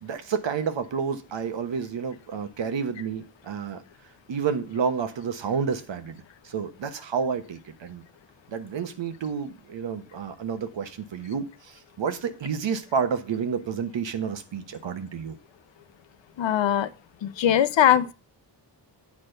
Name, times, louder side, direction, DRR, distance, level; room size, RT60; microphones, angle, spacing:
voice 1, 0.0-3.8 4.3-8.0 8.5-15.4, right 6 dB, 80° right, 10 dB, 1.2 m, -30 dB
voice 2, 16.4-16.9 17.2-18.1, left 10 dB, 85° left, 15 dB, 0.7 m, -21 dB
8.5 x 4.3 x 6.5 m, 0.32 s
wide cardioid pair, 95°, 44 cm